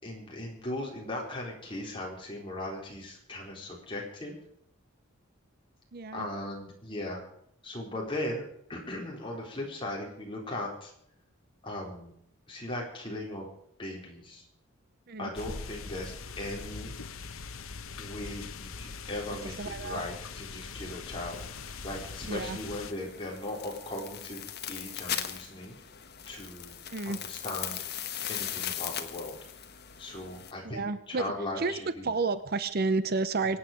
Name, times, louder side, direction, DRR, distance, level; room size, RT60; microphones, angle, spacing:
voice 1, 0.0-4.3 6.1-7.2 7.6-8.4 8.7-10.9 11.6-12.1 12.5-13.5 13.8-14.5 15.2-16.9 18.0-21.4 21.8-25.8 26.3-26.8 27.1-27.8 28.3-29.4 30.0-32.1, left 1 dB, 25° left, -2 dB, 4.2 m, -38 dB
voice 2, 5.9-6.3 15.1-15.3 19.4-20.0 22.3-22.6 26.9-27.2 30.6-31.3 31.6-31.7 32.0-33.6, right 3 dB, 45° right, 13 dB, 0.6 m, -30 dB
sound 1, 15.3-22.9, left 4 dB, 75° left, 1.0 m, -42 dB
sound 2, 21.3-30.5, left 10 dB, 50° left, 1.3 m, -39 dB
24.0 x 8.9 x 5.2 m, 0.69 s
head